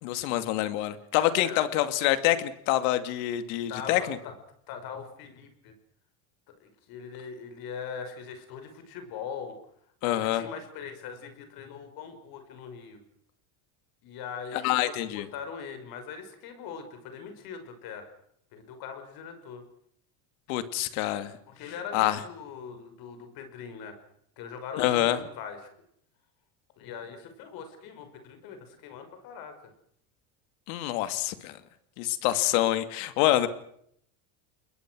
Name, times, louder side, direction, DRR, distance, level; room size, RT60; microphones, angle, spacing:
voice 1, 0.0-4.2 10.0-10.4 14.6-15.2 20.5-21.3 21.9-22.2 24.8-25.2 30.7-31.6 32.0-33.5, left 14 dB, 80° left, 11 dB, 2.5 m, -26 dB
voice 2, 3.7-4.3 4.7-5.7 6.6-9.6 10.0-13.0 14.0-18.1 18.5-19.6 21.5-24.0 24.4-25.7 26.8-29.6, left 6 dB, 60° left, 8 dB, 5.8 m, -41 dB
29.0 x 21.5 x 6.3 m, 0.69 s
cardioid pair, 135°, 41 cm